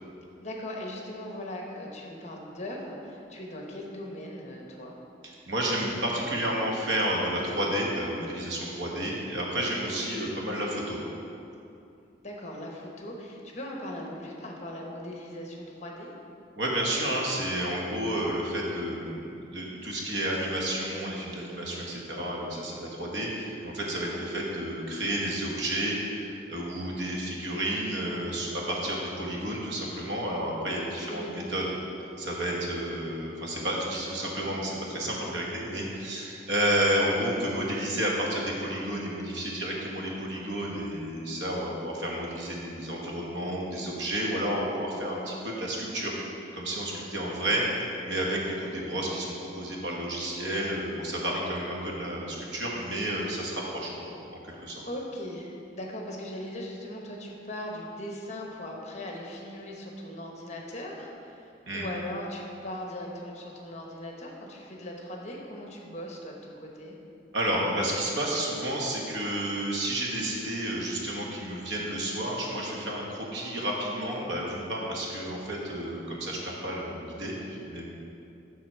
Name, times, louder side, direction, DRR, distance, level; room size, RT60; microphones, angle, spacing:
voice 1, 0.4-5.0 12.2-16.1 24.0-24.3 31.0-31.4 54.8-67.0, left 1 dB, 40° left, 0 dB, 1.0 m, -39 dB
voice 2, 5.5-11.0 16.5-31.7 32.2-46.2 46.5-47.6 48.0-54.8 61.6-61.9 67.3-77.9, right 1 dB, 80° right, -2 dB, 1.3 m, -31 dB
7.4 x 6.1 x 4.4 m, 2.7 s
head